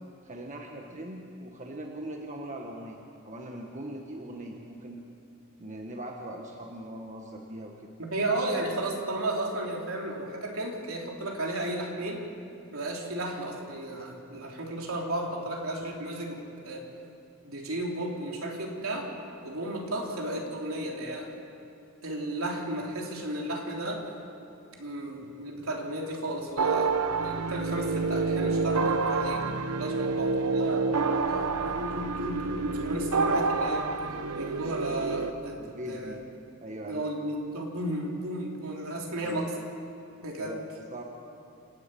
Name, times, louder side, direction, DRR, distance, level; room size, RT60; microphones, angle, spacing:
voice 1, 0.2-5.0 5.6-7.9 29.8-30.3 35.6-36.2 36.6-37.0 39.2-39.4 40.4-41.0, right 1 dB, 35° right, 1 dB, 1.5 m, -41 dB
voice 2, 8.0-12.3 12.7-16.9 17.4-19.1 19.4-21.3 22.0-24.0 24.8-26.9 27.2-29.4 29.7-30.9 31.3-33.9 34.3-36.2 36.8-39.5 40.2-40.6, right 1 dB, 70° right, 0 dB, 3.6 m, -34 dB
sound 1, 26.6-35.3, right 4 dB, 90° right, 0.9 m, -28 dB
28.0 x 10.5 x 9.2 m, 2.7 s
head